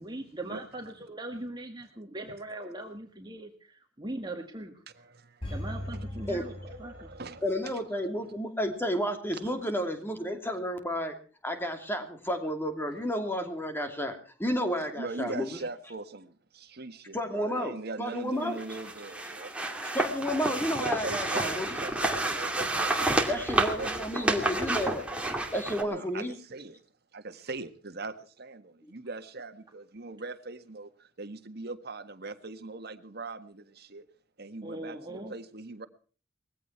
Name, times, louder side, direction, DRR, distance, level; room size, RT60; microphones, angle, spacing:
voice 1, 0.0-4.7 5.5-6.5 6.8-7.1 34.6-35.3, right 1 dB, 25° right, 3 dB, 1.8 m, -40 dB
voice 2, 4.9-6.0 6.4-7.8 9.3-9.5 14.9-19.6 20.7-24.7 25.8-26.8 27.1-34.0 34.4-35.9, right 3 dB, 55° right, 9 dB, 1.6 m, -41 dB
sound 1, 5.4-7.6 7.9-8.0, left 1 dB, 30° left, 4.5 m, -39 dB
voice 3, 7.4-11.2 11.4-15.5 17.1-18.6 19.8-21.7 23.3-25.1 25.5-26.3, equal, 10° left, 6 dB, 2.7 m, -31 dB
sound 2, 18.6-25.8, right 2 dB, 5° right, 2.5 m, -30 dB
20.5 x 15.5 x 4.5 m, 0.40 s
head